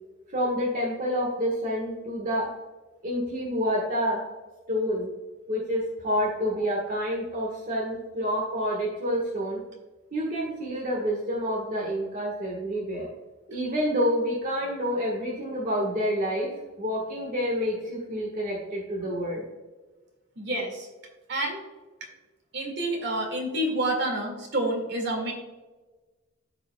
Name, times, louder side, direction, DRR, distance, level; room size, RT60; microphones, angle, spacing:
voice 1, 0.3-2.5 3.0-4.2 4.7-5.1 5.5-9.6 10.1-13.1 13.5-16.5 16.8-19.4, equal, 45° right, -3 dB, 1.4 m, -28 dB
voice 2, 20.4-20.9 21.3-21.6 22.5-25.3, right 1 dB, 60° right, 2 dB, 2.0 m, -28 dB
13.5 x 4.8 x 2.3 m, 1.2 s
head